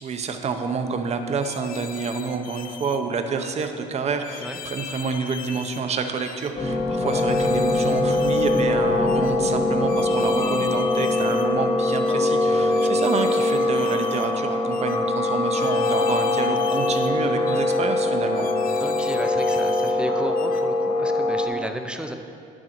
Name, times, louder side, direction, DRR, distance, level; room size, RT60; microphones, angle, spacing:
voice 1, 0.0-18.4, right 5 dB, 40° right, 6 dB, 0.7 m, -28 dB
sound 1, 1.4-3.0 3.4-3.7 4.2-5.8 6.2-6.5 7.0-8.6 9.1-9.3 9.9-11.5 11.8-12.2 12.7-14.3 14.7-15.0 15.5-17.1 17.5-17.8 18.3-19.9 20.4-20.6, left 7 dB, 55° left, 0.6 m, -40 dB
sound 2, 6.6-21.5, left 2 dB, 40° left, 1.5 m, -22 dB
voice 2, 12.5-13.0 18.8-22.1, right 1 dB, 5° right, 6 dB, 0.6 m, -34 dB
9.6 x 6.5 x 4.5 m, 2.5 s
cardioid pair, 110°, 17 cm